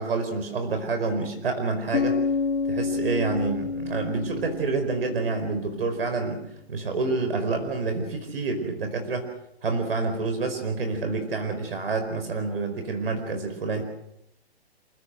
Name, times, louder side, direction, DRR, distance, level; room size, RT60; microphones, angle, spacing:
voice 1, 0.0-2.2 2.6-6.4 6.7-9.3 9.6-13.8, right 3 dB, 60° right, 6 dB, 4.8 m, -28 dB
Bass guitar, 1.9-5.8, left 5 dB, 85° left, 1.7 m, -29 dB
28.0 x 17.0 x 7.9 m, 0.80 s
hypercardioid pair, 175°, 33 cm